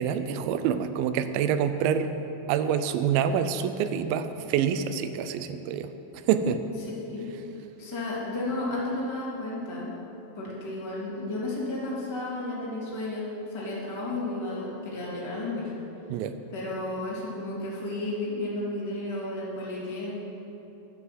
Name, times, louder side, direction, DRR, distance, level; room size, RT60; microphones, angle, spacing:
voice 1, 0.0-2.1 2.5-5.9 6.3-6.6 16.1-16.4, right 8 dB, 90° right, 10 dB, 2.0 m, -26 dB
voice 2, 7.8-9.9 10.3-13.3 13.5-15.7 16.5-20.1, left 2 dB, 10° left, -7 dB, 1.6 m, -32 dB
11.5 x 7.9 x 7.7 m, 3.0 s
omnidirectional pair, 4.8 m